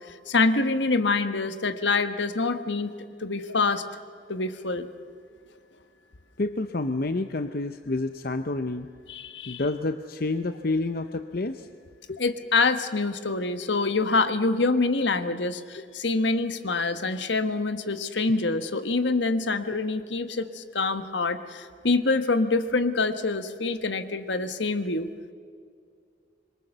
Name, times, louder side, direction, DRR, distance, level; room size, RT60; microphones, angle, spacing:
voice 1, 0.0-2.9 3.2-3.9 4.3-4.9 9.1-9.6 12.2-25.1, left 3 dB, 70° left, 10 dB, 1.4 m, -26 dB
voice 2, 6.4-8.9 9.5-11.7 12.1-12.2, left 2 dB, 50° left, 9 dB, 0.8 m, -29 dB
26.5 x 22.5 x 6.8 m, 2.2 s
head